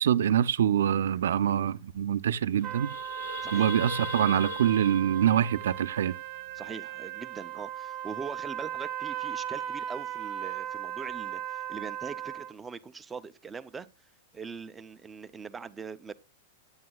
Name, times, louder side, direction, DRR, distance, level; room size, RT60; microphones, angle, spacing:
voice 1, 0.0-3.0 3.5-6.1, right 9 dB, 85° right, 0.4 m, -25 dB
sound 1, 1.8-2.0 2.4-6.7, left 6 dB, 85° left, 0.6 m, -42 dB
sound 2, 2.6-12.5, right 11 dB, 30° right, 0.8 m, -37 dB
voice 2, 3.4-3.7 6.5-13.9 14.3-16.1, right 5 dB, 10° right, 0.4 m, -42 dB
9.3 x 8.7 x 2.3 m
supercardioid pair, 160°, 0 cm